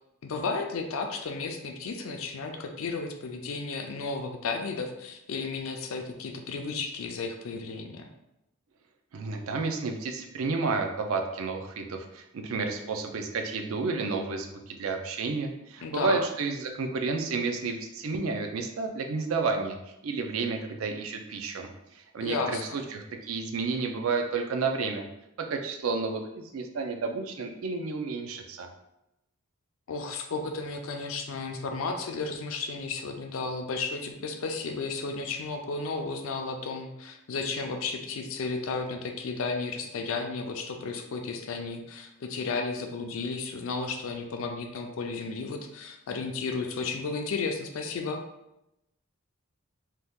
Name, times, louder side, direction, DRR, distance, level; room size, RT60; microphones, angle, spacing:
voice 1, 0.2-8.1 15.8-16.2 22.2-22.8 29.9-48.2, left 4 dB, 70° left, 5 dB, 0.4 m, -33 dB
voice 2, 9.1-19.8 20.0-21.7 21.9-25.1 25.5-28.7, right 4 dB, 80° right, 4 dB, 0.5 m, -31 dB
2.8 x 2.3 x 3.5 m, 0.88 s
head